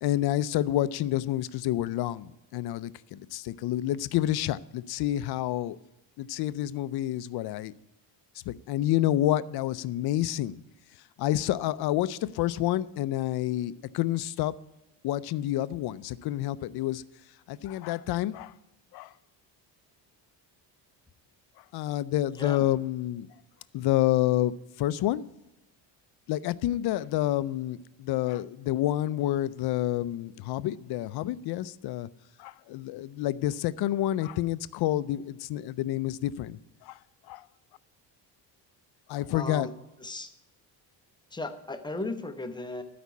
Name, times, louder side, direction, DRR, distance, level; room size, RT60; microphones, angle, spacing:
voice 1, 0.0-5.8 6.2-7.7 8.5-10.6 11.2-14.5 15.0-17.0 17.5-18.6 18.9-19.1 21.7-23.3 23.7-25.3 26.3-32.1 32.4-37.0 37.3-37.5 39.1-39.7, left 14 dB, 60° left, 16 dB, 0.5 m, -29 dB
voice 2, 39.3-39.7 40.0-40.3 41.3-42.8, left 2 dB, 10° left, 7 dB, 0.7 m, -36 dB
12.5 x 5.1 x 8.2 m, 0.98 s
cardioid pair, 165°, 44 cm